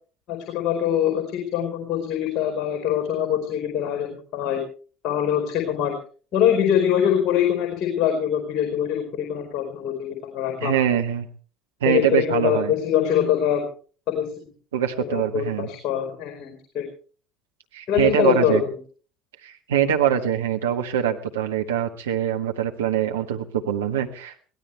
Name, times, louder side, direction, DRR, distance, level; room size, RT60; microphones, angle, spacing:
voice 1, 0.3-4.6 5.0-5.9 6.3-10.8 11.8-13.6 14.1-14.3 15.0-16.9 17.9-18.7, left 9 dB, 45° left, 4 dB, 4.7 m, -23 dB
voice 2, 10.6-11.3 11.8-12.7 14.7-15.7 17.7-18.6 19.4-24.3, right 9 dB, 75° right, 5 dB, 1.5 m, -23 dB
23.5 x 17.5 x 3.4 m, 0.41 s
figure-of-eight pair, 65°, 0 cm